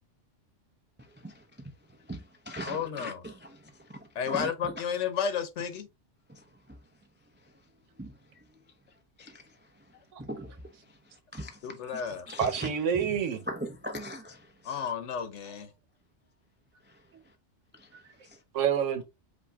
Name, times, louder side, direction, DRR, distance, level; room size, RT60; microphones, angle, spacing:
voice 1, 1.0-1.7 2.0-4.7 6.3-6.8 8.0-8.6 9.2-9.9 10.2-12.0 12.3-13.1 13.5-14.8 16.9-17.0 17.7-18.4, equal, 15° right, 0.3 m, -42 dB
voice 2, 2.7-3.2 4.1-5.9 11.6-12.3 14.6-15.7, left 7 dB, 75° left, 1.1 m, -32 dB
voice 3, 12.4-13.4 18.5-19.0, right 8 dB, 85° right, 1.2 m, -27 dB
5.2 x 2.7 x 3.5 m
omnidirectional pair, 1.2 m